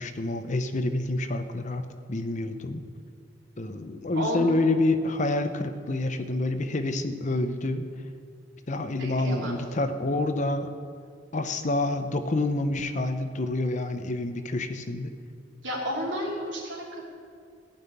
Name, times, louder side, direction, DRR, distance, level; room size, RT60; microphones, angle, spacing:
voice 1, 0.0-2.8 3.6-7.9 8.7-10.7 11.3-15.1, left 2 dB, 40° left, 8 dB, 0.8 m, -28 dB
voice 2, 4.1-4.5 9.0-9.6 15.6-17.1, equal, 85° right, -3 dB, 3.2 m, -32 dB
14.5 x 5.9 x 9.4 m, 2.2 s
head